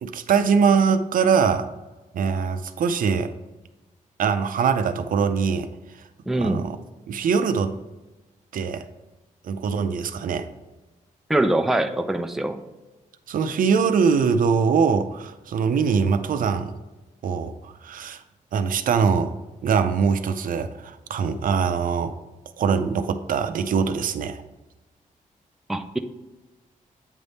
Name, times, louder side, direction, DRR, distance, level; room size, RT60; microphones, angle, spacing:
voice 1, 0.0-1.7 2.1-3.3 4.2-5.7 6.3-6.7 7.1-7.8 8.5-8.8 9.4-10.5 13.3-16.7 17.2-18.2 18.5-19.3 19.6-22.1 22.6-24.4, right 6 dB, 75° right, 9 dB, 0.5 m, -22 dB
voice 2, 6.3-6.7 11.3-12.6 25.7-26.0, right 1 dB, ahead, 6 dB, 0.4 m, -23 dB
8.9 x 3.5 x 4.1 m, 1.1 s
wide cardioid pair, 125°, 14 cm